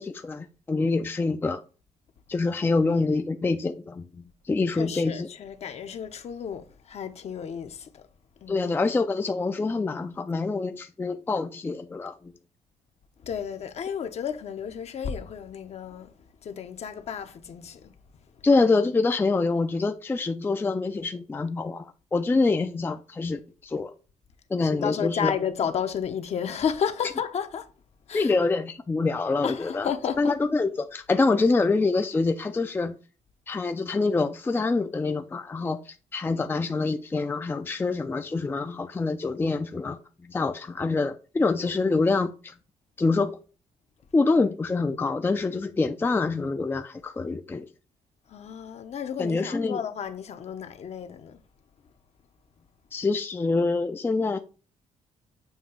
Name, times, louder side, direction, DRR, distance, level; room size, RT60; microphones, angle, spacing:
voice 1, 0.0-1.6 2.3-5.3 8.5-12.1 18.4-21.9 22.1-23.9 24.5-25.3 28.1-29.9 30.2-33.0 33.5-35.8 36.1-40.0 40.3-42.5 43.0-43.4 44.1-47.7 49.2-49.8 52.9-54.4, left 3 dB, 15° left, 0.4 m, -25 dB
voice 2, 4.7-8.0 8.4-8.7 13.2-16.1 16.4-17.9 24.6-27.7 28.1-28.4 29.4-30.4 48.3-51.4, left 7 dB, 55° left, 0.9 m, -32 dB
7.2 x 2.9 x 5.6 m
cardioid pair, 125°, 13 cm